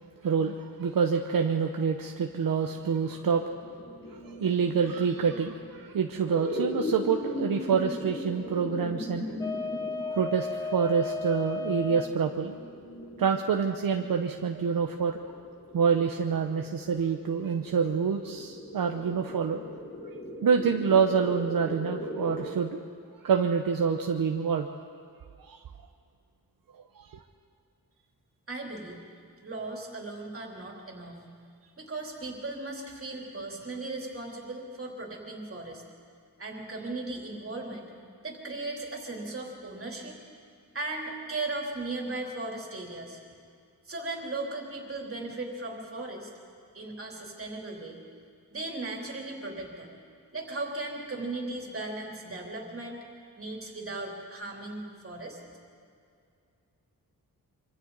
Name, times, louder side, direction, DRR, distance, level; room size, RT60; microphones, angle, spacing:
voice 1, 0.2-3.4 4.1-9.3 10.1-12.6 13.2-15.2 15.7-19.6 20.4-22.8 23.2-24.7 25.5-25.6 27.0-27.2, right 6 dB, 65° right, 3 dB, 1.0 m, -27 dB
sound 1, 2.7-22.4, left 2 dB, 35° left, 4.7 m, -39 dB
sound 2, 9.4-12.1, left 3 dB, 10° left, 0.6 m, -34 dB
voice 2, 28.5-29.0 29.4-31.3 31.8-35.8 36.4-37.8 38.2-40.2 40.7-43.2 43.8-46.3 46.7-48.0 48.5-49.9 50.3-53.0 53.4-55.4, right 2 dB, 35° right, -1 dB, 3.4 m, -37 dB
26.0 x 25.5 x 4.1 m, 2.4 s
wide cardioid pair, 155°, 36 cm